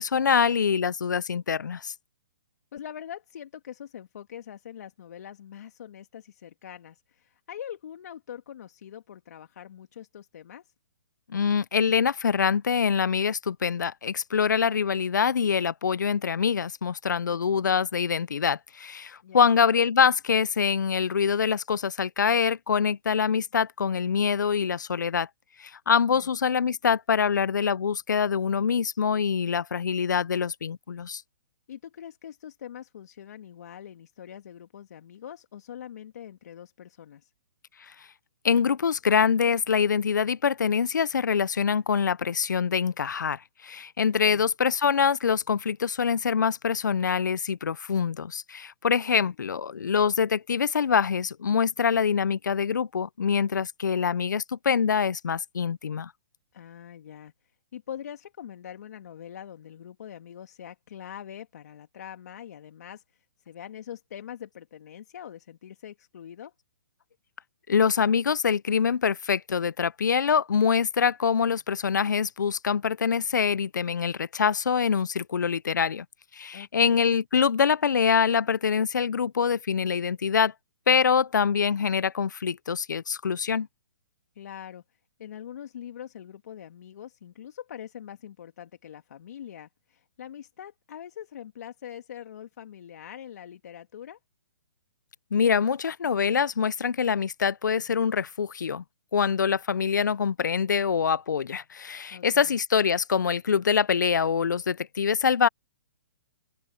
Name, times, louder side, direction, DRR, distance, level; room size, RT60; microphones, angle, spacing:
voice 1, 0.0-1.9 11.3-25.3 25.6-31.2 38.4-56.1 67.7-76.1 76.3-80.5 80.9-83.7 95.3-98.8 99.1-105.5, left 6 dB, 80° left, 0.6 m, -25 dB
voice 2, 2.7-10.7 17.3-17.4 19.2-19.5 26.1-26.3 31.7-37.3 44.2-44.4 49.1-49.4 56.5-57.3 57.7-63.0 63.5-66.5 76.5-77.0 84.4-84.8 85.2-94.2 102.1-102.6, left 9 dB, 60° left, 2.3 m, -43 dB
open air
hypercardioid pair, 135°, 10 cm